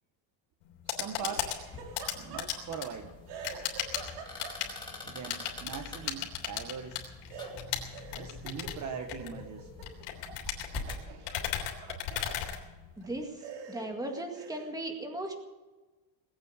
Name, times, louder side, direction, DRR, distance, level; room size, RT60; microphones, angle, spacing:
sound 1, 0.6-13.2, left 11 dB, 80° left, 3.4 m, -37 dB
voice 1, 0.9-1.6 2.1-3.1 5.0-7.0 8.1-9.7, right 7 dB, 35° right, 6 dB, 1.1 m, -41 dB
Laughter, 1.2-3.0 3.3-4.9 7.3-10.4 10.7-12.4 13.0-13.1 13.4-14.8, right 5 dB, 80° right, 3.9 m, -46 dB
sound 2, 1.6-11.0, left 2 dB, 10° left, 2.5 m, -46 dB
voice 2, 13.0-13.4 13.7-15.4, right 1 dB, 5° right, 3 dB, 2.0 m, -37 dB
20.0 x 8.8 x 8.1 m, 1.2 s
cardioid pair, 170°, 50 cm